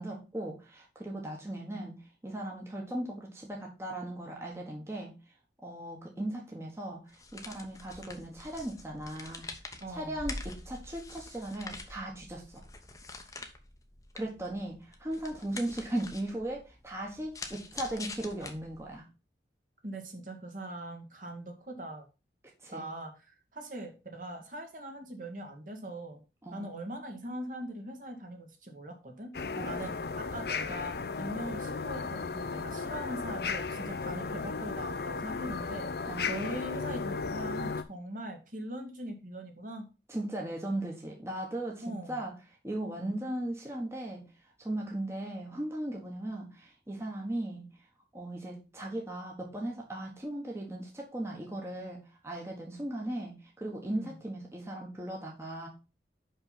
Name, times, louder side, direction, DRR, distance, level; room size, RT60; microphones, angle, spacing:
voice 1, 0.0-5.1 5.6-9.5 9.9-12.6 14.1-19.1 22.6-22.9 26.4-26.8 29.6-30.0 36.0-36.4 40.1-42.3 42.6-44.2 44.6-47.7 48.1-55.7, right 1 dB, 15° right, -1 dB, 1.3 m, -37 dB
sound 1, 7.1-19.0, left 3 dB, 20° left, 0.9 m, -45 dB
voice 2, 9.8-10.2 19.8-22.0 22.7-26.2 26.5-29.3 29.6-39.9 41.8-42.2 53.9-54.2, right 1 dB, 50° right, 3 dB, 1.7 m, -41 dB
sound 2, 29.3-37.8, left 4 dB, 60° left, 0.6 m, -35 dB
5.7 x 5.6 x 5.7 m, 0.30 s
head